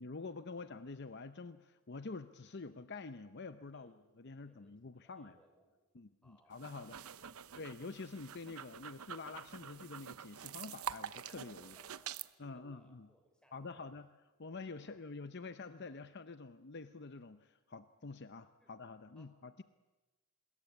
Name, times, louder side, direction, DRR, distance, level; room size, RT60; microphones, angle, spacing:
voice 1, 0.0-5.4 5.9-6.9 7.6-11.8 12.4-13.1 13.5-14.1 14.4-19.6, left 3 dB, 50° left, 11 dB, 0.7 m, -47 dB
voice 2, 4.3-5.7 6.2-6.9 11.6-14.1 14.8-15.0 18.6-18.8 19.2-19.3, equal, 5° left, 3 dB, 5.3 m, -68 dB
sound 1, 6.5-12.3, right 8 dB, 75° right, 0.8 m, -47 dB
26.0 x 21.5 x 8.4 m, 1.1 s
head